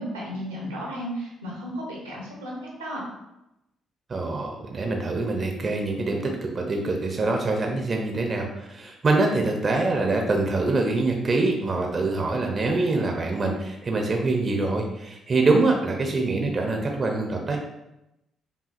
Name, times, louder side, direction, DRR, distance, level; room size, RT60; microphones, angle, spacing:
voice 1, 0.0-3.1, equal, 90° right, -3 dB, 0.8 m, -34 dB
voice 2, 4.1-17.6, right 3 dB, 40° right, 2 dB, 0.6 m, -24 dB
5.0 x 2.7 x 2.5 m, 0.90 s
hypercardioid pair, 45°, 0 cm